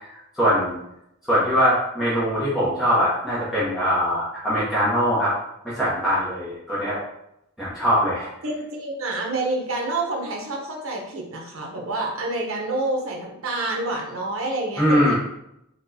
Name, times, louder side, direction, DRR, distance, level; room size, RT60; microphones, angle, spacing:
voice 1, 0.4-0.8 1.3-5.3 5.6-7.0 7.6-8.3 14.8-15.1, equal, ahead, -11 dB, 0.8 m, -22 dB
voice 2, 8.4-15.1, right 2 dB, 65° right, 0 dB, 0.8 m, -28 dB
4.1 x 2.3 x 2.7 m, 0.81 s
head